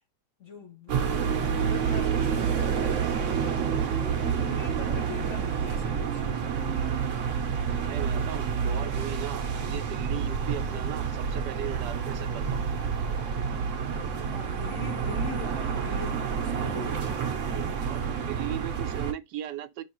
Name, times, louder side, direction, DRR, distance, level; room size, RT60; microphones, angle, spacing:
voice 1, 0.4-7.1 14.3-17.6, left 5 dB, 55° left, 0.9 m, -42 dB
sound 1, 0.9-19.1, right 7 dB, 60° right, 0.9 m, -29 dB
voice 2, 7.8-12.7 17.3-19.8, right 11 dB, 80° right, 1.3 m, -38 dB
5.4 x 3.3 x 3.0 m
omnidirectional pair, 1.8 m